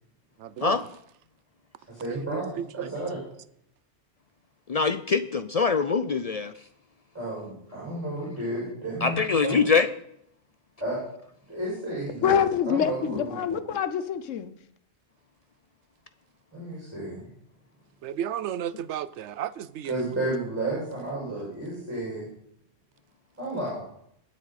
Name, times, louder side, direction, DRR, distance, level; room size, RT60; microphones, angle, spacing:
voice 1, 0.4-0.9 2.1-3.0 4.9-5.0 18.0-20.2, right 10 dB, 70° right, 0.9 m, -34 dB
voice 2, 1.9-2.5 2.7-3.2 7.1-9.6 10.8-11.0 11.5-12.4 12.6-13.4 16.5-17.3 19.9-22.2 23.4-23.9, right 1 dB, 10° right, 6.0 m, -32 dB
voice 3, 4.7-6.5 9.0-9.9, left 5 dB, 60° left, 0.4 m, -23 dB
voice 4, 12.2-14.5, left 8 dB, 90° left, 1.1 m, -25 dB
20.0 x 7.5 x 4.1 m
omnidirectional pair, 1.3 m